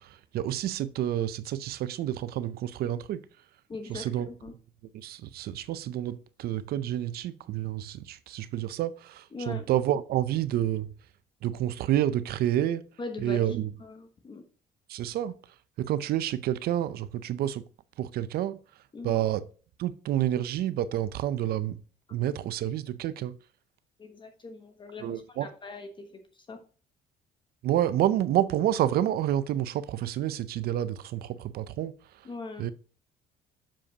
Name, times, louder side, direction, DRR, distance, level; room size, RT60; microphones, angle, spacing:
voice 1, 0.0-3.2 3.9-4.3 4.9-10.9 11.4-12.8 13.2-13.7 14.9-15.3 15.8-17.6 18.0-18.6 19.0-19.4 19.8-21.8 22.1-23.4 25.0-25.5 27.6-31.9 32.6-32.7, right 12 dB, 65° right, 0.5 m, -29 dB
voice 2, 3.7-4.5 9.3-9.6 13.0-13.4 13.8-14.4 18.9-19.2 24.0-26.6 32.2-32.7, left 3 dB, 30° left, 1.1 m, -41 dB
7.5 x 6.8 x 2.8 m
cardioid pair, 110°, 17 cm